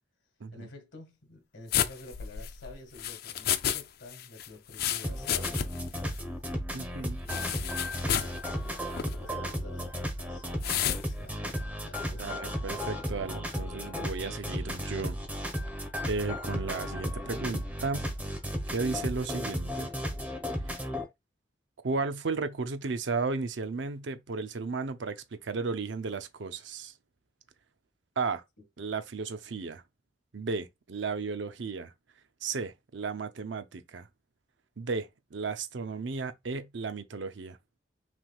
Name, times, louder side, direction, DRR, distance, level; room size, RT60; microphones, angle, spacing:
voice 1, 0.5-6.2 7.2-11.5 11.8-12.4 24.3-24.4, left 2 dB, 80° left, 1.7 m, -49 dB
sound 1, 1.7-3.8 4.1-5.9 6.2-6.3 7.3-8.4 8.9-9.1 10.6-11.0, left 10 dB, 55° left, 0.4 m, -31 dB
sound 2, 5.0-21.0, equal, 10° right, 0.9 m, -34 dB
voice 2, 6.7-7.2 12.2-15.2 16.1-18.1 18.7-19.9 20.7-20.8 21.8-26.9 28.2-28.4 28.8-29.8 30.3-31.9 32.4-34.1 34.8-37.6, right 4 dB, 75° right, 0.6 m, -34 dB
6.0 x 3.4 x 2.3 m
head